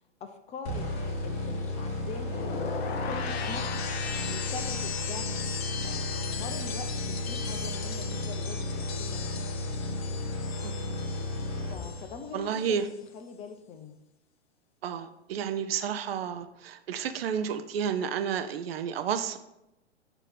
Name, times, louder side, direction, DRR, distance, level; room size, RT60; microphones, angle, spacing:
voice 1, 0.2-0.9 1.2-2.5 3.0-5.4 5.8-9.5 11.7-14.0, left 5 dB, 20° left, 7 dB, 0.6 m, -43 dB
sound 1, 0.6-12.3, left 2 dB, 40° left, 1.4 m, -33 dB
sound 2, 2.1-12.2 12.5-13.0, left 6 dB, 60° left, 0.7 m, -38 dB
voice 2, 12.3-12.8 14.8-19.4, right 7 dB, 60° right, 9 dB, 0.7 m, -31 dB
6.8 x 3.0 x 5.6 m, 0.88 s
figure-of-eight pair, 105°, 34 cm